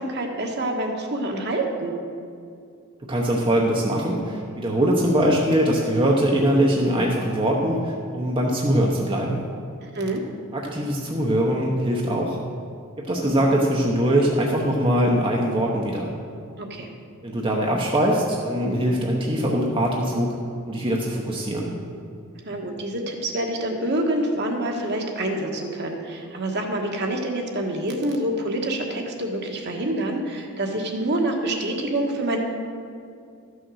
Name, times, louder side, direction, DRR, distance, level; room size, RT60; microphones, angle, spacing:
voice 1, 0.0-1.9 9.8-10.2 16.6-16.9 22.4-32.4, right 1 dB, 50° right, 1 dB, 1.4 m, -27 dB
voice 2, 3.0-9.5 10.5-12.4 13.0-16.1 17.2-20.4 20.6-21.8, right 1 dB, 25° right, -2 dB, 0.9 m, -22 dB
13.0 x 6.4 x 6.3 m, 2.4 s
head